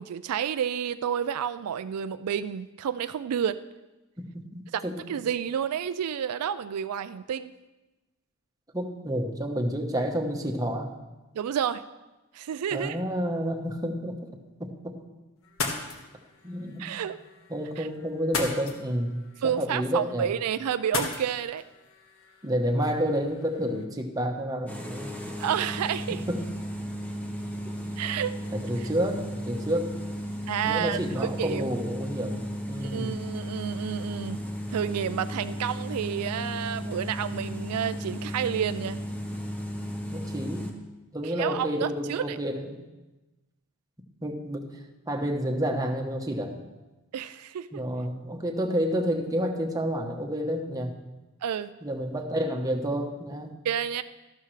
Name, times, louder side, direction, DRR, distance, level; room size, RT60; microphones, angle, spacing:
voice 1, 0.0-3.6 4.7-7.5 11.3-11.8 12.3-13.0 16.8-17.2 17.8-17.9 19.4-21.6 25.4-26.2 28.0-28.4 28.8-28.9 30.5-31.7 32.8-34.4 34.7-39.0 41.2-42.4 47.1-47.8 51.4-51.7 53.6-54.0, right 8 dB, 85° right, 12 dB, 0.4 m, -30 dB
voice 2, 4.2-5.0 8.7-10.9 12.7-14.2 14.6-14.9 16.4-16.9 17.5-19.1 19.4-20.3 22.4-25.1 26.3-26.4 28.5-29.9 30.6-33.2 40.1-40.7 41.1-42.8 44.2-44.7 45.1-46.6 47.7-50.9 51.8-53.5, equal, 15° right, 2 dB, 1.0 m, -29 dB
sound 1, 15.4-23.8, left 3 dB, 65° left, 1.4 m, -38 dB
sound 2, 24.7-40.7, equal, 5° left, 1.0 m, -35 dB
13.0 x 12.0 x 3.2 m, 1.1 s
head